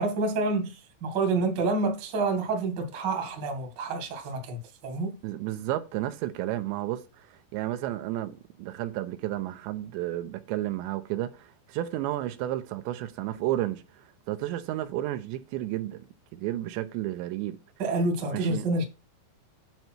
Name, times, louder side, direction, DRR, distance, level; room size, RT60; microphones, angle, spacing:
voice 1, 0.0-5.2 17.8-18.8, right 3 dB, 45° right, 1.5 m, -28 dB
voice 2, 5.2-17.6 18.3-18.7, right 14 dB, 80° right, 2.9 m, -32 dB
9.5 x 5.3 x 4.5 m
omnidirectional pair, 5.3 m